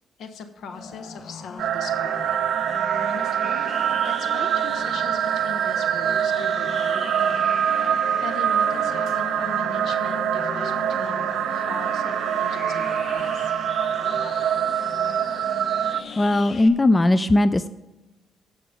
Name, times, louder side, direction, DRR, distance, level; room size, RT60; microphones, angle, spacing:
voice 1, 0.2-3.8 4.0-13.5 14.0-14.1, left 5 dB, 70° left, 8 dB, 1.1 m, -40 dB
sound 1, 0.7-16.7, left 4 dB, 45° left, 0.8 m, -38 dB
sound 2, 1.6-16.0, right 9 dB, 75° right, 0.3 m, -24 dB
sound 3, 3.5-16.2, left 3 dB, 85° left, 1.8 m, -43 dB
voice 2, 16.2-17.7, left 2 dB, 20° left, 13 dB, 0.3 m, -18 dB
14.0 x 5.1 x 5.2 m, 1.0 s
cardioid pair, 90°, 0 cm